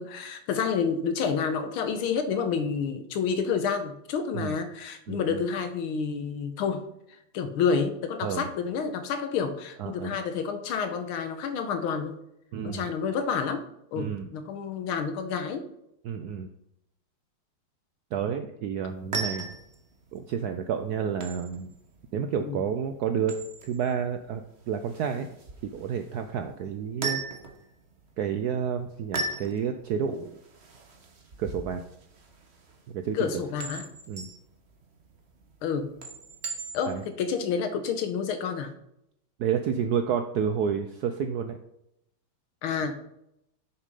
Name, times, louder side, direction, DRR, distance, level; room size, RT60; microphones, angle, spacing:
voice 1, 0.0-6.9 7.3-12.2 12.6-13.6 13.9-15.7 22.5-22.6 33.1-33.8 35.6-35.9 36.7-38.8 42.6-43.0, left 6 dB, 80° left, 9 dB, 1.8 m, -29 dB
voice 2, 5.1-5.4 8.2-8.5 9.8-10.2 12.5-12.9 14.0-14.3 16.0-16.5 18.1-19.5 20.1-21.7 22.1-25.3 25.7-27.2 28.2-30.4 31.4-31.8 32.9-33.3 34.1-34.3 36.9-37.0 39.4-41.6, right 7 dB, 90° right, 7 dB, 0.8 m, -30 dB
sound 1, 18.8-37.1, right 4 dB, 40° right, 1.1 m, -39 dB
7.4 x 6.9 x 5.3 m, 0.79 s
omnidirectional pair, 2.3 m